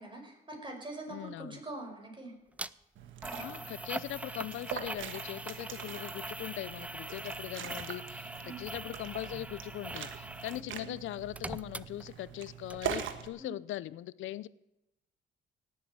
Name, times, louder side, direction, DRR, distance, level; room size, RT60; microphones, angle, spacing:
voice 1, 0.0-2.3 8.4-8.6 10.6-10.9 13.4-13.5, right 2 dB, 25° right, 2 dB, 5.4 m, -44 dB
voice 2, 1.1-1.6 3.4-14.5, left 14 dB, 80° left, 19 dB, 0.6 m, -40 dB
sound 1, 2.6-2.7 3.2-10.7 11.0-12.4 12.7-12.8, right 1 dB, 5° right, 0.5 m, -42 dB
Liquid, 3.0-13.3, right 8 dB, 75° right, 1.6 m, -43 dB
18.0 x 8.7 x 8.0 m, 0.90 s
cardioid pair, 90°, 20 cm